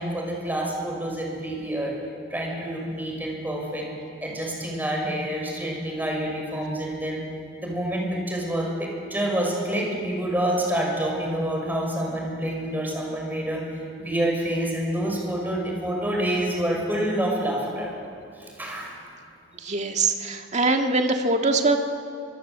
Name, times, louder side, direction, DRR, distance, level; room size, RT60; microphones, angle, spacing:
voice 1, 0.0-1.9 2.3-3.9 4.2-7.2 7.6-17.9 18.3-18.9, right 1 dB, 10° right, -1 dB, 6.0 m, -27 dB
voice 2, 19.5-21.8, right 3 dB, 40° right, 4 dB, 1.8 m, -23 dB
25.5 x 23.0 x 8.1 m, 2.4 s
head